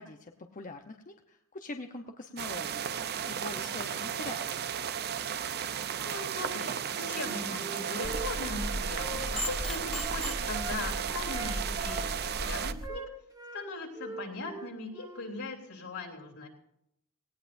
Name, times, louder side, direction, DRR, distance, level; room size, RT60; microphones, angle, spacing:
voice 1, 0.0-2.9 3.2-4.6, left 2 dB, 35° left, 4 dB, 0.8 m, -43 dB
sound 1, 2.4-12.7, right 8 dB, 45° right, 0.5 m, -34 dB
voice 2, 6.0-13.1 13.5-16.5, left 2 dB, 75° left, 0 dB, 3.2 m, -39 dB
Wind instrument woodwind instrument, 7.1-10.8 11.2-13.7 13.9-15.3, right 2 dB, 15° right, 1.3 m, -43 dB
sound 2, 8.0-12.9, equal, 5° left, 0.8 m, -37 dB
18.5 x 17.0 x 2.6 m, 0.81 s
head